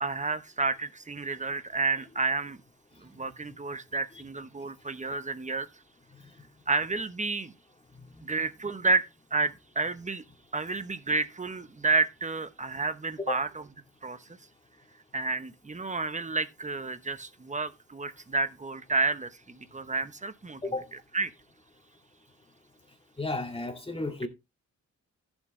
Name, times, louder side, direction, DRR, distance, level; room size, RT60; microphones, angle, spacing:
voice 1, 0.0-2.6 3.0-5.7 6.7-7.5 8.2-10.2 10.5-13.7 14.0-14.2 15.1-20.6 20.9-21.3, right 3 dB, 25° right, 1.0 m, -30 dB
voice 2, 23.2-24.3, left 2 dB, 20° left, 2.1 m, -32 dB
14.5 x 6.4 x 3.2 m
wide cardioid pair, 120°, 30 cm